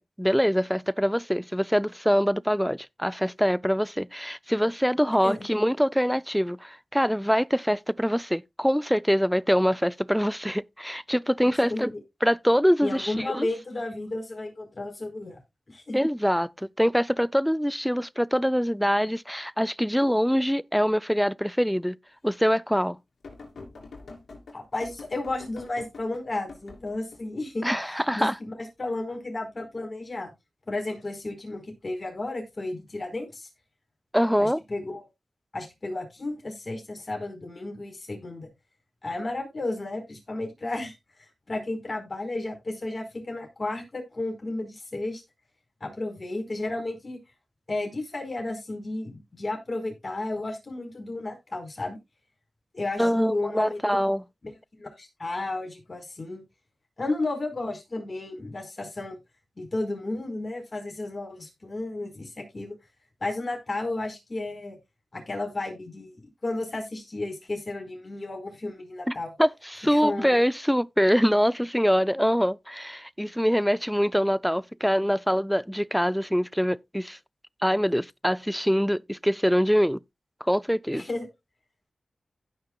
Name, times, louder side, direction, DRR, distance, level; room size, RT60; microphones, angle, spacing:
voice 1, 0.0-11.9 12.2-13.5 15.9-22.0 22.2-23.0 27.6-28.4 34.1-34.6 53.0-54.2 69.1-77.2 77.6-80.0 80.4-81.0, equal, ahead, 0.4 m, -24 dB
voice 2, 12.8-15.4 15.7-16.0 24.5-28.5 28.8-30.3 30.7-33.5 34.4-35.1 35.5-38.5 39.0-40.9 41.5-45.2 45.8-47.2 47.7-52.0 52.7-53.8 54.8-56.4 57.0-59.2 59.6-62.7 63.2-64.8 65.1-66.1 66.4-69.3 69.9-70.3 80.9-81.3, left 2 dB, 50° left, 4.6 m, -33 dB
sound 1, 23.2-27.2 30.7-31.0 32.2-32.3, left 3 dB, 85° left, 3.1 m, -46 dB
16.0 x 5.8 x 2.3 m
cardioid pair, 50°, 0 cm